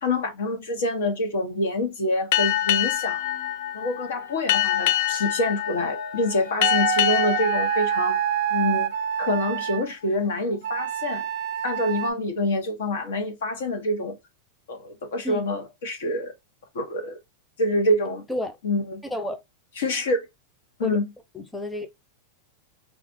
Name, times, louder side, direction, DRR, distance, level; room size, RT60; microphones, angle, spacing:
voice 1, 0.0-3.2 3.7-8.2 8.5-8.9 9.2-11.3 11.6-14.2 14.7-16.3 16.7-17.2 17.6-18.2 18.6-19.0 19.8-20.2 20.8-21.1, left 1 dB, 80° left, 0.9 m, -26 dB
Boat Water vehicle, 2.3-9.4, left 13 dB, 60° left, 0.3 m, -26 dB
sound 1, 3.1-8.1, left 1 dB, 45° left, 0.8 m, -46 dB
sound 2, 6.6-9.8 10.6-12.1, right 12 dB, 60° right, 0.4 m, -27 dB
voice 2, 19.0-19.4 20.8-21.0 21.3-22.0, equal, 5° left, 0.7 m, -31 dB
3.5 x 2.5 x 2.6 m
hypercardioid pair, 115°, 0 cm